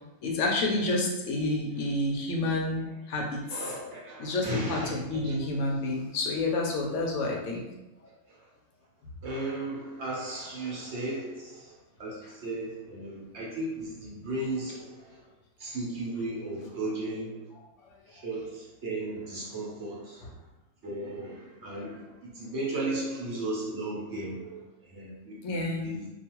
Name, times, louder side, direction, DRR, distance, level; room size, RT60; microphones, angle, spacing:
voice 1, 0.2-3.4 4.2-7.6 25.4-26.0, left 2 dB, 70° left, -1 dB, 0.8 m, -29 dB
voice 2, 3.5-5.6 8.0-8.5 9.2-15.3 15.6-17.5 18.1-20.4 20.8-25.6 25.8-26.1, right 2 dB, 55° right, -5 dB, 0.9 m, -36 dB
2.4 x 2.3 x 2.9 m, 0.98 s
omnidirectional pair, 1.5 m